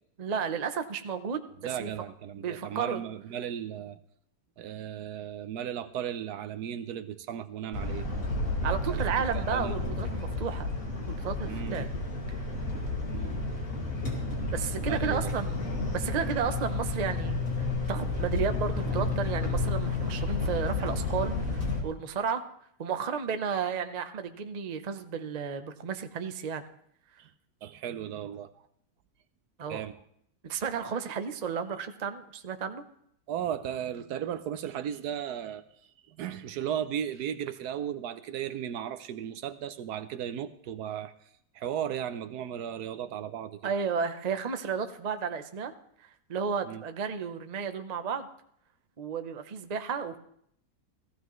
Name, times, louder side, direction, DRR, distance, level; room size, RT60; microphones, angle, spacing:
voice 1, 0.2-1.9 2.4-3.0 8.6-10.7 11.1-11.9 12.3-12.4 14.5-15.6 15.9-22.5 22.8-26.6 29.6-29.9 30.4-32.8 43.6-45.7 46.0-48.3 49.0-50.2, right 6 dB, 50° right, 8 dB, 0.5 m, -33 dB
voice 2, 1.6-4.0 4.6-8.1 8.9-9.1 9.5-9.8 11.5-11.9 13.1-13.4 14.9-15.3 27.2-27.3 27.6-28.5 29.7-29.9 33.3-35.6 36.1-41.1 41.5-43.7 46.6-46.8, right 9 dB, 70° right, 12 dB, 1.1 m, -35 dB
sound 1, 7.7-21.8, left 3 dB, 50° left, 2.7 m, -31 dB
16.0 x 14.5 x 3.1 m, 0.69 s
omnidirectional pair, 1.8 m